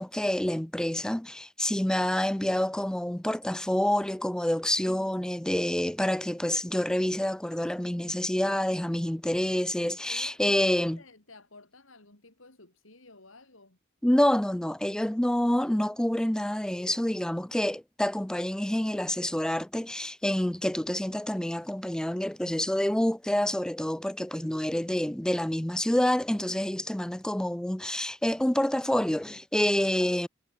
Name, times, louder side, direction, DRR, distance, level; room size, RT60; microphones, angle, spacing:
voice 1, 0.0-11.0 14.0-30.3, left 1 dB, 5° left, 0.3 m, -27 dB
voice 2, 10.0-13.8, left 3 dB, 85° left, 4.9 m, -52 dB
head